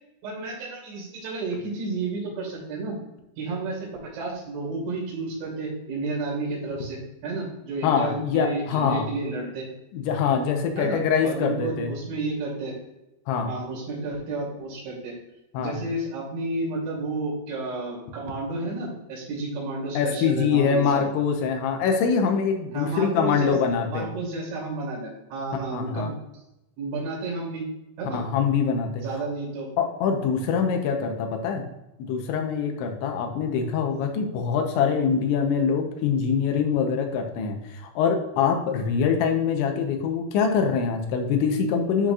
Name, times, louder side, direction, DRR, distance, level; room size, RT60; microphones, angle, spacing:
voice 1, 0.2-2.9 3.4-9.7 10.8-12.7 13.5-15.1 15.6-21.0 22.7-26.1 26.8-27.6 28.0-28.2 29.0-29.7, right 3 dB, 70° right, -4 dB, 5.1 m, -31 dB
voice 2, 7.8-9.1 9.9-11.9 13.3-13.5 15.5-15.7 19.9-24.1 25.7-26.1 28.1-29.0 29.8-31.7 32.0-42.1, left 6 dB, 75° left, 4 dB, 3.1 m, -24 dB
11.0 x 5.9 x 2.5 m, 0.90 s
omnidirectional pair, 5.7 m